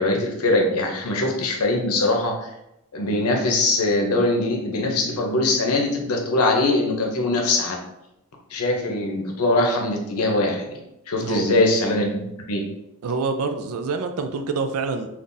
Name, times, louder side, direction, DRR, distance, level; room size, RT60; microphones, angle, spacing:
voice 1, 0.0-2.3 2.9-7.8 8.5-10.8 11.1-12.6, left 2 dB, 90° left, 1 dB, 0.7 m, -22 dB
voice 2, 13.0-15.1, right 4 dB, 85° right, 7 dB, 0.4 m, -26 dB
3.7 x 2.4 x 2.6 m, 0.86 s
head